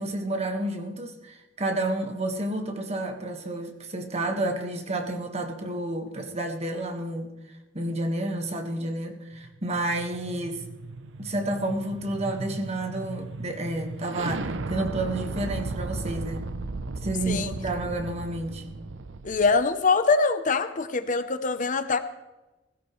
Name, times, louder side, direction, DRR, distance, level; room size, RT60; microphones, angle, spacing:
voice 1, 0.0-7.3 7.7-10.6 11.2-16.5 17.0-18.6, right 1 dB, 35° right, 5 dB, 1.6 m, -30 dB
sound 1, 9.4-19.6, right 3 dB, 75° right, 0.7 m, -36 dB
voice 2, 19.2-22.0, left 4 dB, 45° left, 11 dB, 0.7 m, -23 dB
16.5 x 16.0 x 3.2 m, 1.1 s
head